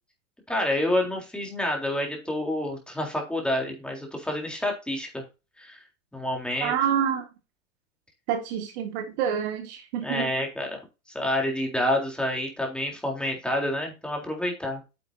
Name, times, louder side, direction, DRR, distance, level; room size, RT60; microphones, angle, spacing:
voice 1, 0.5-5.2 5.6-5.8 6.1-6.7 10.0-10.8 11.1-14.8, left 1 dB, ahead, 3.7 m, -28 dB
voice 2, 6.6-7.3 8.3-10.3, right 8 dB, 55° right, 2.1 m, -27 dB
9.5 x 7.6 x 2.8 m
hypercardioid pair, 115°, 40 cm